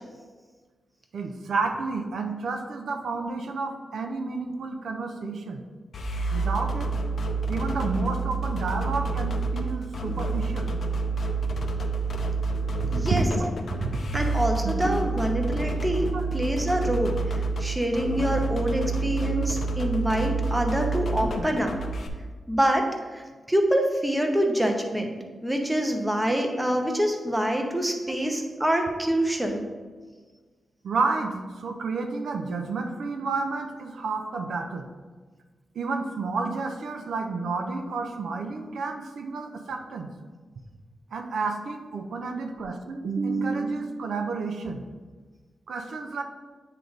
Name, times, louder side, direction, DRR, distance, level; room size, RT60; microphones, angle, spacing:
voice 1, 1.1-5.6 6.3-6.9 7.5-10.7 12.8-14.2 14.6-15.0 16.1-16.2 18.4-18.5 19.3-19.5 21.4-21.5 30.8-34.9 35.7-40.1 41.1-44.8 45.7-46.2, right 4 dB, 75° right, 4 dB, 0.6 m, -30 dB
sound 1, 5.9-22.1, right 3 dB, 55° left, 0.6 m, -28 dB
voice 2, 12.9-13.2 14.1-16.1 16.3-21.7 22.5-22.9 23.1-25.1 25.4-29.6, equal, 5° right, 3 dB, 0.7 m, -26 dB
9.0 x 3.3 x 3.9 m, 1.4 s
wide cardioid pair, 145°, 0 cm